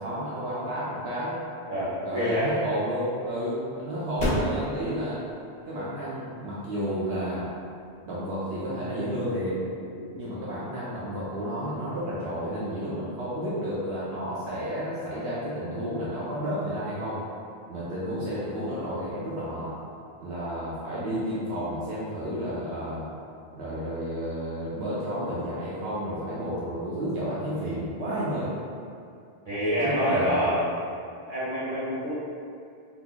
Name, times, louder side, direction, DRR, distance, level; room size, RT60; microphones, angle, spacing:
voice 1, 0.0-1.4 2.0-5.2 5.7-7.5 8.0-9.6 10.1-17.2 17.7-19.7 20.2-23.0 23.5-28.5 29.8-30.5, equal, 80° right, -8 dB, 0.9 m, -31 dB
sound 1, 1.7-8.9, left 1 dB, 45° left, 0.9 m, -36 dB
voice 2, 1.7-2.5 9.9-10.2 29.4-30.6 31.3-32.2, equal, 40° right, -11 dB, 1.3 m, -27 dB
3.8 x 2.8 x 2.2 m, 2.5 s
omnidirectional pair, 1.0 m